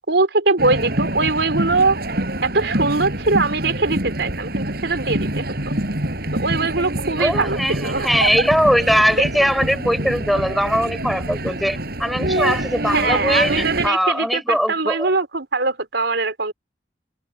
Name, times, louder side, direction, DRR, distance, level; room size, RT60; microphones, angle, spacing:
voice 1, 0.1-2.0 2.4-5.7 6.4-8.1 12.9-16.5, right 3 dB, 80° right, 4.1 m, -21 dB
sound 1, 0.6-13.9, right 1 dB, 60° right, 5.8 m, -25 dB
voice 2, 7.2-15.1, equal, ahead, 6.3 m, -20 dB
head